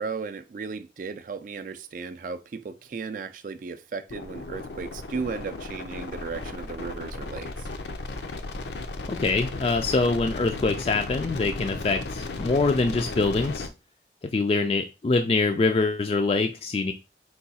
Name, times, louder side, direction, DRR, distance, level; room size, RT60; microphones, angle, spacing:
voice 1, 0.0-7.7, right 5 dB, 45° right, 0.3 m, -35 dB
sound 1, 4.1-13.7, left 2 dB, 75° left, 0.6 m, -35 dB
voice 2, 9.1-13.7 14.3-16.9, left 3 dB, 35° left, 0.3 m, -24 dB
4.6 x 2.3 x 4.1 m
head